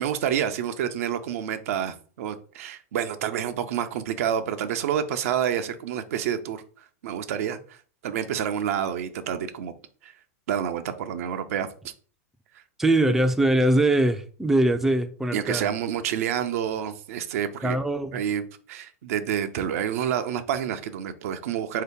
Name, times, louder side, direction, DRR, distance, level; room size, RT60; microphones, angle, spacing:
voice 1, 0.0-6.6 7.0-7.8 8.0-9.7 10.0-10.1 10.5-11.7 15.3-17.8 18.1-18.4 18.7-21.8, right 9 dB, 70° right, 0.5 m, -28 dB
voice 2, 12.8-15.7 17.6-18.2, right 1 dB, 5° right, 0.3 m, -22 dB
3.8 x 2.8 x 3.5 m
hypercardioid pair, 110°, 8 cm